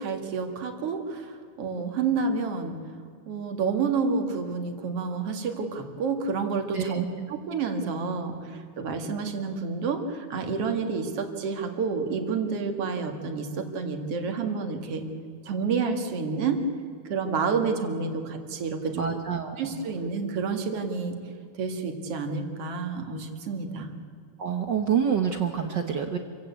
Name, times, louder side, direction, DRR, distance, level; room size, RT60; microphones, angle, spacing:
voice 1, 0.0-2.8 3.3-15.0 15.4-16.6 17.0-19.0 19.6-21.2 21.5-23.9, right 5 dB, 50° right, 5 dB, 2.7 m, -29 dB
voice 2, 19.0-19.8 24.4-26.2, right 7 dB, 80° right, 6 dB, 1.0 m, -27 dB
27.0 x 16.0 x 8.3 m, 2.3 s
omnidirectional pair, 3.7 m